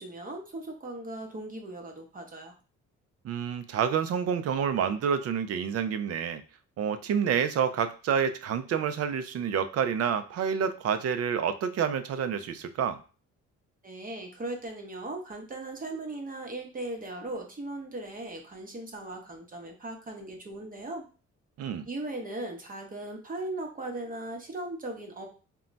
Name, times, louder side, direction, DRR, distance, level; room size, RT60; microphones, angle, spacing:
voice 1, 0.0-2.6 13.8-21.1 21.9-25.3, right 2 dB, 30° right, 3 dB, 0.8 m, -38 dB
voice 2, 3.2-6.4 6.8-13.0 21.6-21.9, right 7 dB, 55° right, 11 dB, 0.4 m, -28 dB
2.2 x 2.1 x 3.8 m, 0.36 s
cardioid pair, 90°, 30 cm